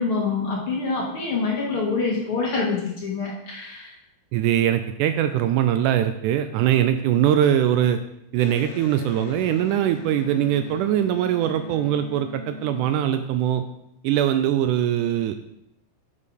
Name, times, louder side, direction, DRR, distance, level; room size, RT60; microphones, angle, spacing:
voice 1, 0.0-4.0, left 4 dB, 45° left, -2 dB, 2.3 m, -26 dB
voice 2, 4.3-8.0 8.3-13.6 14.0-15.4, right 11 dB, 80° right, 9 dB, 1.9 m, -22 dB
Electric guitar, 8.4-13.9, left 4 dB, 90° left, 2.3 m, -40 dB
8.5 x 6.6 x 5.2 m, 0.80 s
omnidirectional pair, 3.8 m